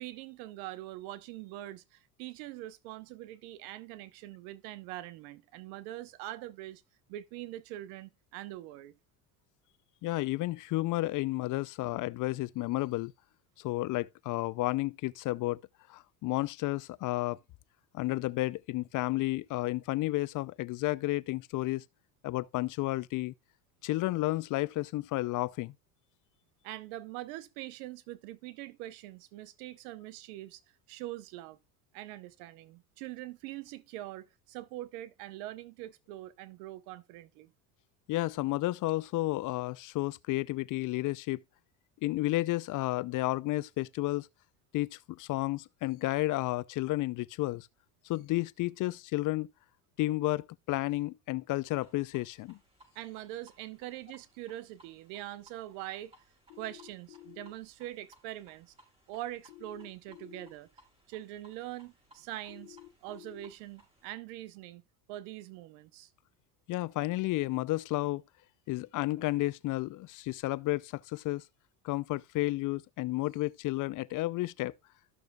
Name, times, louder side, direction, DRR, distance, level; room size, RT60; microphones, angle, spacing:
voice 1, 0.0-6.8 7.1-8.9 26.6-30.6 30.9-31.6 31.9-37.5 52.9-56.1 56.6-58.7 59.1-60.7 61.1-64.8 65.1-66.1, right 15 dB, 70° right, 1.1 m, -43 dB
voice 2, 10.0-13.1 13.6-15.6 15.9-17.4 17.9-21.8 22.2-23.3 23.8-25.7 38.1-41.4 42.0-44.3 44.7-47.7 48.0-49.5 50.0-52.6 66.7-68.2 68.7-71.4 71.8-74.7, left 18 dB, 45° left, 0.5 m, -32 dB
sound 1, 51.7-64.1, right 1 dB, 15° right, 5.2 m, -64 dB
sound 2, 56.5-57.5 59.5-60.5 62.5-63.5, left 16 dB, 70° left, 1.4 m, -51 dB
14.0 x 6.5 x 2.3 m
supercardioid pair, 90°, 45 cm